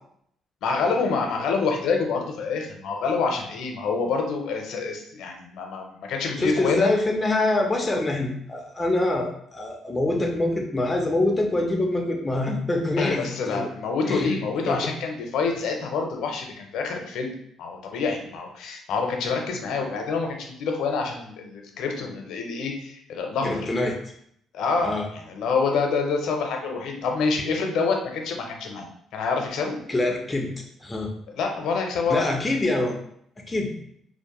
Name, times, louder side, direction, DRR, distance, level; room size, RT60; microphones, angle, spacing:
voice 1, 0.6-6.9 13.0-17.3 17.6-23.7 24.5-28.9 29.1-29.7 31.3-32.4, left 4 dB, 75° left, 2 dB, 0.5 m, -27 dB
voice 2, 6.4-13.6 14.1-14.3 14.7-14.8 23.4-24.0 24.8-25.1 29.9-30.5 30.8-31.1 32.1-32.9 33.5-33.7, left 2 dB, 15° left, 1 dB, 0.4 m, -25 dB
2.5 x 2.0 x 2.9 m, 0.70 s
cardioid pair, 120°, 0 cm